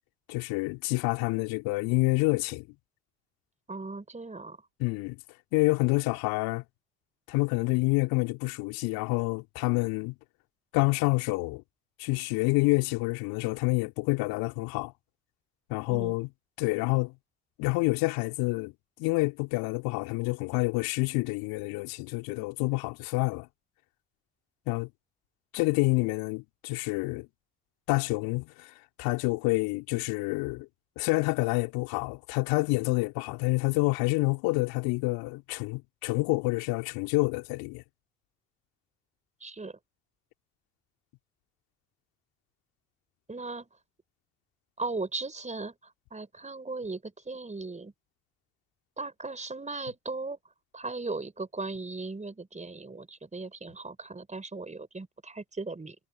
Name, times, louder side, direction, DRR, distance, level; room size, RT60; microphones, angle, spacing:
voice 1, 0.3-2.7 4.8-5.2 5.5-6.6 7.3-10.1 10.7-11.6 12.0-14.9 15.7-16.3 16.6-17.1 17.6-18.7 19.0-23.5 24.7-24.9 25.5-27.3 27.9-28.7 29.0-30.7 31.0-37.8, left 25 dB, 65° left, 3.7 m, -28 dB
voice 2, 3.7-4.6 15.9-16.2 39.4-39.8 43.3-43.7 44.8-47.9 49.0-50.4 50.7-56.0, right 3 dB, 20° right, 5.0 m, -37 dB
figure-of-eight pair, 55°, 38 cm